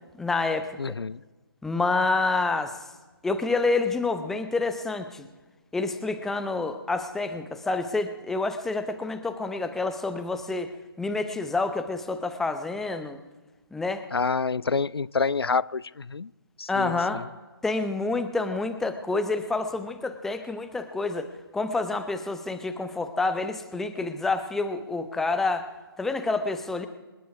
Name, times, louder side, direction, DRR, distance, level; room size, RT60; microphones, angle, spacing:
voice 1, 0.2-0.9 1.6-2.8 3.2-5.3 5.7-10.7 11.0-13.2 13.7-14.0 16.7-17.2 17.6-25.7 26.0-26.9, left 3 dB, 5° left, 8 dB, 0.7 m, -28 dB
voice 2, 0.8-1.2 14.1-16.3 16.6-17.3, left 4 dB, 85° left, 23 dB, 0.4 m, -28 dB
27.0 x 9.2 x 4.7 m, 1.2 s
figure-of-eight pair, 145°, 12 cm